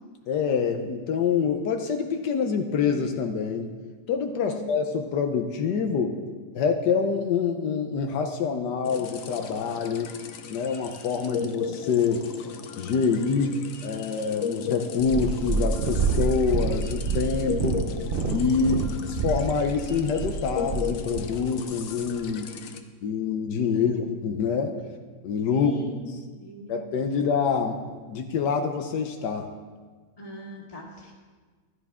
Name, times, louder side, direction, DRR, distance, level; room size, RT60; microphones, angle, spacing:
voice 1, 0.3-3.7 4.1-6.2 6.5-10.1 10.5-12.3 12.8-17.8 18.3-22.5 23.0-24.8 25.2-25.7 26.7-29.5, left 5 dB, 80° left, 5 dB, 1.4 m, -26 dB
voice 2, 4.3-4.7 18.7-19.1 23.6-24.0 25.5-25.9 26.2-26.7 30.2-31.1, left 2 dB, 20° left, -1 dB, 2.0 m, -42 dB
sound 1, 8.8-22.8, left 7 dB, 60° left, 1.0 m, -36 dB
Purr, 15.0-21.3 22.1-22.2, right 4 dB, 45° right, 0.7 m, -27 dB
14.5 x 12.5 x 3.6 m, 1.4 s
omnidirectional pair, 1.8 m